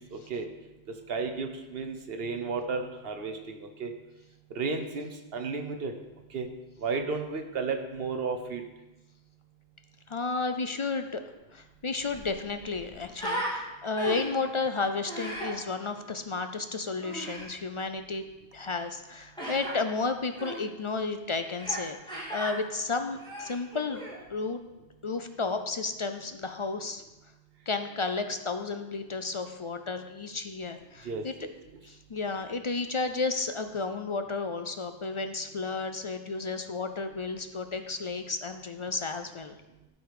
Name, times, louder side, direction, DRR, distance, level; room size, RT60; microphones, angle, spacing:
voice 1, 0.1-0.4 1.1-3.9 4.5-5.9 6.3-6.5 6.8-8.6 31.0-31.5, right 4 dB, 65° right, 6 dB, 1.1 m, -33 dB
voice 2, 10.1-11.2 11.5-18.2 18.5-24.0 24.3-24.6 25.0-27.0 27.7-31.3 31.8-39.6, left 4 dB, 50° left, 7 dB, 0.4 m, -32 dB
Human voice, 11.6-11.7 11.9-13.5 13.9-14.4 15.0-15.5 17.0-17.5 19.4-19.7 20.3-20.6 21.6-21.8 22.1-22.5 23.1-24.2, right 1 dB, 5° left, 2.2 m, -36 dB
12.5 x 5.1 x 4.8 m, 1.0 s
omnidirectional pair, 1.1 m